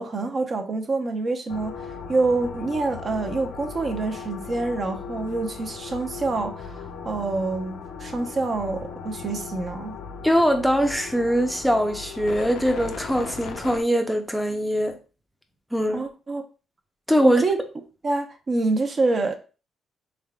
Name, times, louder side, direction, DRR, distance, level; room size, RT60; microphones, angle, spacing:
voice 1, 0.0-10.0 15.9-16.4 17.2-17.6 18.0-19.4, right 3 dB, 40° right, 0.7 m, -26 dB
sound 1, 1.5-13.8, left 5 dB, 75° left, 0.6 m, -37 dB
voice 2, 10.2-15.0 15.7-16.0 17.1-17.4, equal, ahead, 0.6 m, -22 dB
3.5 x 3.4 x 2.3 m
cardioid pair, 90°, 0 cm